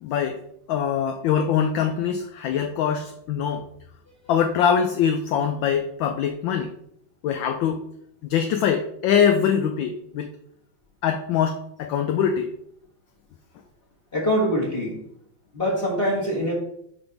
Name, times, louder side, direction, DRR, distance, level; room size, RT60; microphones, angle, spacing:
voice 1, 0.0-0.4 0.7-3.6 4.3-6.7 7.2-7.8 8.2-10.3 11.0-12.5, left 8 dB, 75° left, 6 dB, 1.2 m, -23 dB
voice 2, 14.1-15.0 15.5-16.5, equal, 30° left, -3 dB, 1.4 m, -23 dB
10.5 x 3.6 x 3.9 m, 0.73 s
omnidirectional pair, 2.4 m